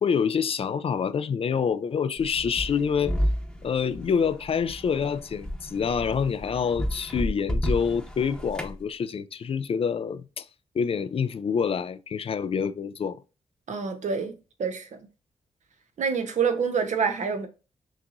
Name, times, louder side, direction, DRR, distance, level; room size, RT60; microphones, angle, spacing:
voice 1, 0.0-3.1 3.6-10.5 10.7-13.2, left 6 dB, 50° left, 0.4 m, -27 dB
sound 1, 2.2-8.8, equal, 5° left, 0.9 m, -31 dB
voice 2, 13.7-14.3 14.6-15.0 16.0-17.5, right 6 dB, 70° right, 0.9 m, -26 dB
5.9 x 2.9 x 2.5 m
cardioid pair, 85°, 13 cm